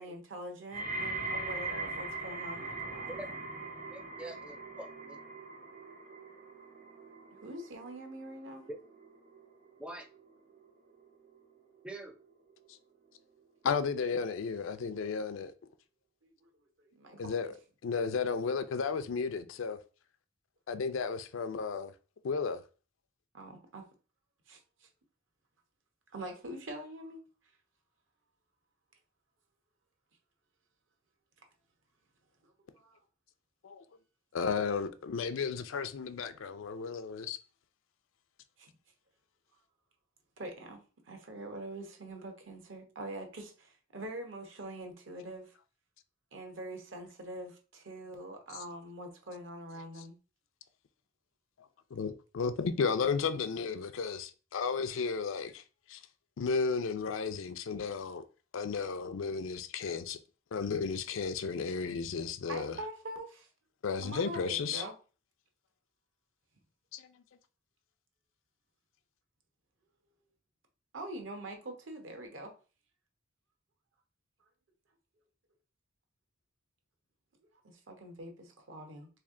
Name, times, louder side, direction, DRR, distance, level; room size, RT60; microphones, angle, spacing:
voice 1, 0.0-3.4 7.4-8.6 16.2-16.5 17.0-17.3 23.3-23.8 24.5-24.9 26.1-27.2 32.7-33.0 38.6-38.7 40.4-40.8 41.1-45.5 46.3-50.1 62.5-63.5 64.0-64.9 70.9-72.5 77.6-79.1, right 1 dB, 65° right, 1.0 m, -44 dB
sound 1, 0.7-11.8 12.1-12.7 13.4-13.5, right 3 dB, 40° right, 0.8 m, -42 dB
voice 2, 3.9-5.2 8.7-8.8 9.8-10.1 11.8-12.2, right 1 dB, 5° right, 0.4 m, -44 dB
voice 3, 13.6-15.5 17.2-17.5 17.8-19.8 20.7-21.9 22.2-22.6 33.6-33.8 34.3-37.4 51.9-55.6 55.9-56.0 56.4-58.2 58.5-60.2 60.5-62.8 63.8-64.8 66.9-67.1, left 5 dB, 70° left, 0.4 m, -33 dB
3.3 x 3.2 x 3.7 m
head